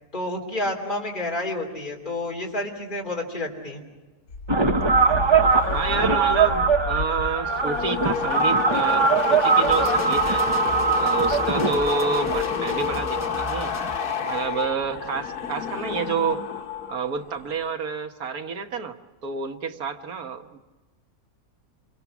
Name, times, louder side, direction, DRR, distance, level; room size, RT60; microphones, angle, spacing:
voice 1, 0.1-3.8, left 1 dB, 30° left, 0 dB, 3.3 m, -29 dB
sound 1, 4.3-17.0 17.3-17.7, left 6 dB, 90° left, 1.7 m, -29 dB
sound 2, 4.5-13.0, right 5 dB, 20° right, 0.8 m, -22 dB
voice 2, 5.7-10.4 11.0-13.7 14.3-16.4 16.9-18.9 19.2-20.6, right 5 dB, 75° right, 6 dB, 1.7 m, -29 dB
sound 3, 9.7-14.0, left 1 dB, 15° left, 0.8 m, -37 dB
28.0 x 24.0 x 6.0 m, 1.2 s
omnidirectional pair, 1.6 m